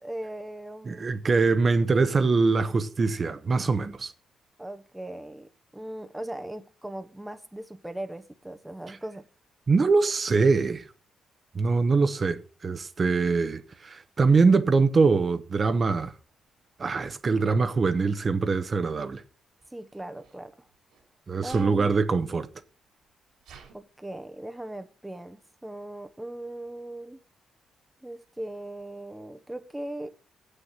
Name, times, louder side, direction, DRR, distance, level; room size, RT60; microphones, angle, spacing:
voice 1, 0.0-1.2 4.6-9.3 19.7-20.7 21.4-21.9 23.7-27.2 28.0-30.1, right 1 dB, 10° right, 0.8 m, -39 dB
voice 2, 0.9-4.1 9.7-10.8 11.5-16.1 16.8-19.2 21.3-22.5, right 4 dB, 40° right, 0.9 m, -23 dB
Sneeze, 19.6-21.0 21.4-21.8 22.5-22.6 22.8-23.8, right 6 dB, 90° right, 3.6 m, -52 dB
7.9 x 6.6 x 7.3 m
cardioid pair, 95°, 0 cm